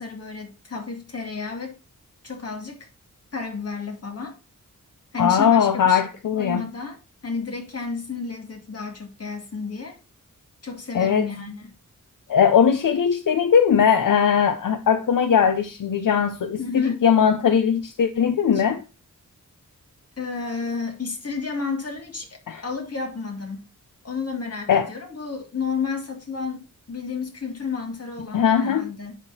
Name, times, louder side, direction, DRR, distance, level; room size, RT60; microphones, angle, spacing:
voice 1, 0.0-1.7 2.2-2.9 3.3-4.4 5.1-6.0 6.3-10.0 10.6-11.7 16.6-17.0 18.5-18.6 20.2-23.7 24.0-29.2, left 4 dB, 50° left, 2.1 m, -31 dB
voice 2, 5.2-6.6 10.9-11.3 12.3-18.8 22.5-22.6 24.7-24.9 28.3-28.8, left 7 dB, 75° left, 0.7 m, -19 dB
10.5 x 3.7 x 4.1 m
wide cardioid pair, 100°, 32 cm